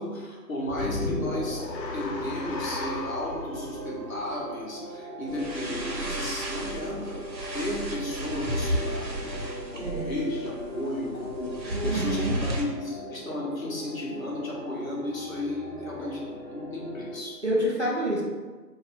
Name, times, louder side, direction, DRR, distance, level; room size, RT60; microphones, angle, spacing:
voice 1, 0.0-1.6 1.9-7.2 7.5-9.3 9.7-17.4, left 1 dB, 55° left, -4 dB, 1.1 m, -34 dB
sound 1, 0.6-17.2, equal, 5° right, 1.3 m, -39 dB
sound 2, 0.7-5.0, left 2 dB, 90° left, 0.7 m, -35 dB
sound 3, 5.3-12.6, right 1 dB, 85° right, 1.1 m, -33 dB
voice 2, 11.6-12.4 17.4-18.2, right 1 dB, 45° right, -4 dB, 0.4 m, -28 dB
2.6 x 2.6 x 4.2 m, 1.4 s
figure-of-eight pair, 165°, 50 cm